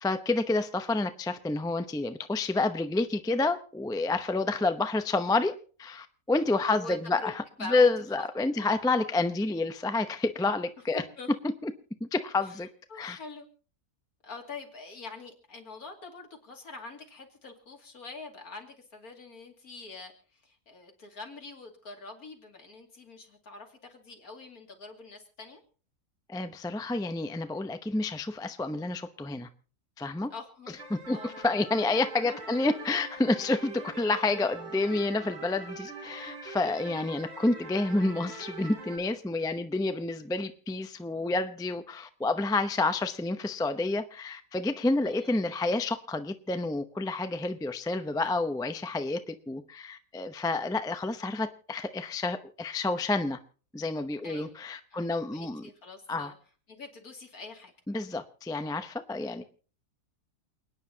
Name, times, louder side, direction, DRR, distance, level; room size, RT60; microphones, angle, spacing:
voice 1, 0.0-7.4 7.7-11.0 11.6-11.7 12.1-12.7 13.0-13.2 26.3-29.5 30.0-30.3 30.9-53.4 53.7-55.6 56.1-56.3 57.9-59.4, left 3 dB, 5° left, 0.5 m, -29 dB
voice 2, 6.6-7.3 7.6-8.3 8.6-8.7 10.9-11.3 12.4-12.6 12.9-13.5 14.2-25.6 30.3-30.8 31.1-31.3 32.2-32.6 45.0-45.5 54.2-54.6 54.9-56.4 56.7-57.7, left 3 dB, 75° left, 3.0 m, -45 dB
sound 1, 30.8-39.0, right 3 dB, 90° right, 4.8 m, -43 dB
29.0 x 9.7 x 2.9 m
omnidirectional pair, 1.6 m